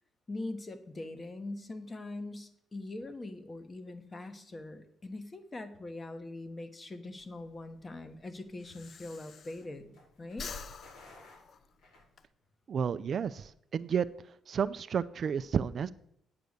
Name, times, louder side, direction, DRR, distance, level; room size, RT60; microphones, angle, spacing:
voice 1, 0.3-10.5, left 2 dB, 25° left, 9 dB, 1.2 m, -42 dB
Breathing, 7.2-10.0 10.3-12.2, left 5 dB, 55° left, 0.7 m, -47 dB
sound 1, 8.2-12.6, left 2 dB, 85° left, 4.9 m, -59 dB
voice 2, 12.7-14.0 14.5-15.9, right 7 dB, 55° right, 14 dB, 0.4 m, -31 dB
9.0 x 6.9 x 6.6 m, 0.70 s
cardioid pair, 90°, 0 cm